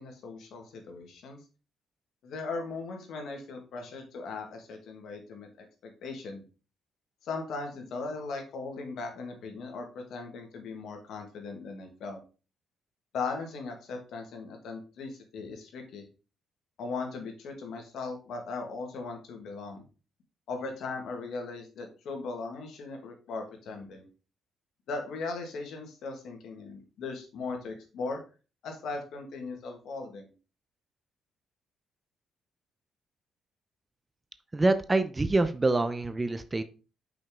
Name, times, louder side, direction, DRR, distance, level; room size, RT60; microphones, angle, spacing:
voice 1, 0.0-1.4 2.2-6.4 7.2-12.2 13.1-16.1 16.8-19.8 20.5-24.1 24.9-28.2 28.6-30.3, left 4 dB, 75° left, 3 dB, 1.8 m, -38 dB
voice 2, 34.5-36.6, right 2 dB, 20° right, 12 dB, 0.6 m, -26 dB
5.9 x 5.2 x 3.7 m, 0.34 s
cardioid pair, 90°, 0 cm